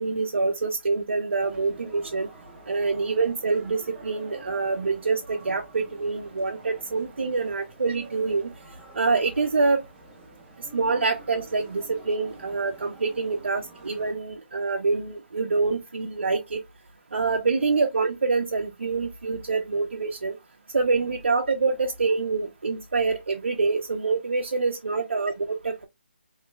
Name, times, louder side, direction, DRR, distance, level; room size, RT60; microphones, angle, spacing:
voice 1, 0.0-2.3 2.7-8.5 8.9-9.8 10.7-16.6 17.1-20.4 20.7-25.9, right 4 dB, 80° right, 0.6 m, -26 dB
sound 1, 1.4-14.1, right 3 dB, 5° right, 0.5 m, -48 dB
3.2 x 2.2 x 3.0 m
hypercardioid pair, 175°, 6 cm